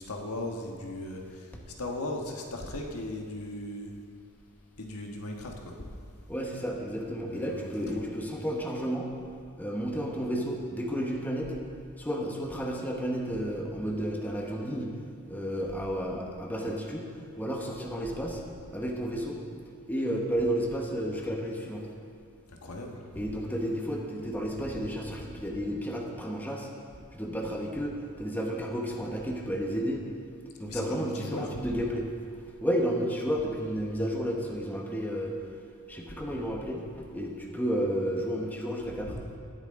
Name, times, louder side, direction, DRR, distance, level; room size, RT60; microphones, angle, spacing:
voice 1, 0.0-1.5 1.8-3.9 4.8-5.9 7.3-8.1 22.5-23.3 30.6-31.8 39.0-39.2, left 1 dB, 80° left, 1 dB, 1.4 m, -38 dB
voice 2, 6.3-9.1 9.6-11.5 12.0-14.9 15.3-17.1 17.4-18.4 18.7-19.4 19.9-21.9 23.1-26.7 27.1-30.0 30.6-32.1 32.6-35.4 35.9-39.1, equal, 10° left, 0 dB, 1.1 m, -32 dB
18.0 x 8.3 x 3.7 m, 2.3 s
head